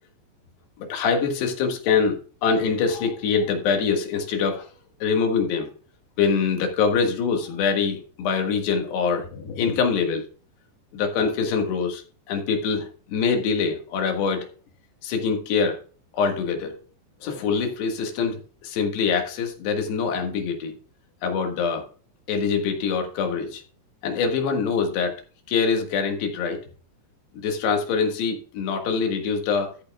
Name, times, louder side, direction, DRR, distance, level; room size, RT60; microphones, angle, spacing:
voice 1, 0.8-4.7 5.0-5.7 6.2-10.2 10.9-14.5 15.0-15.8 16.1-16.8 17.2-20.7 21.2-21.9 22.3-23.6 24.0-25.2 25.5-26.6 27.3-29.7, left 5 dB, 80° left, 3 dB, 3.8 m, -24 dB
13.5 x 8.7 x 2.3 m, 0.39 s
omnidirectional pair, 4.8 m